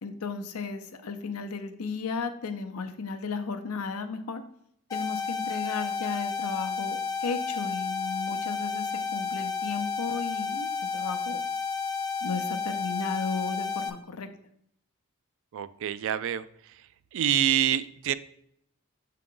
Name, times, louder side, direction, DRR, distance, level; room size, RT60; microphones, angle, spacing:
voice 1, 0.0-4.4 4.9-11.4 12.2-14.3, left 4 dB, 90° left, 8 dB, 0.6 m, -34 dB
sound 1, 4.9-13.9, left 5 dB, 15° left, 0.5 m, -31 dB
voice 2, 15.5-18.1, right 10 dB, 60° right, 15 dB, 0.3 m, -27 dB
6.7 x 3.7 x 3.7 m, 0.70 s
head